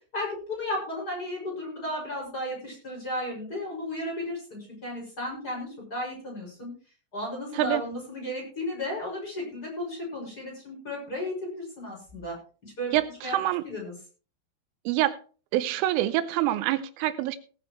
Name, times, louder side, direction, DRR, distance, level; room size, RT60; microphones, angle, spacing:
voice 1, 0.1-6.7 7.1-12.4 12.6-12.9 13.2-13.4 13.6-13.9, left 1 dB, 20° left, 6.2 m, -34 dB
voice 2, 12.9-13.6 14.9-15.2 15.5-17.4, right 14 dB, 85° right, 3.2 m, -26 dB
19.0 x 9.6 x 3.2 m
omnidirectional pair, 5.8 m